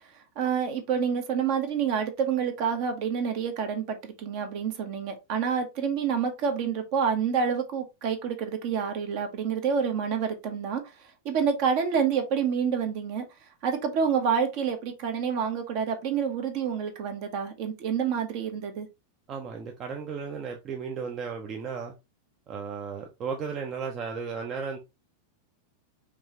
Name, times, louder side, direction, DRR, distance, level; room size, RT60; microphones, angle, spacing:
voice 1, 0.4-10.8 11.2-13.2 13.6-18.9, right 7 dB, 45° right, 1.1 m, -28 dB
voice 2, 19.3-21.9 22.5-24.8, right 5 dB, 30° right, 0.7 m, -35 dB
5.2 x 3.2 x 3.0 m
figure-of-eight pair, 90°, 0 cm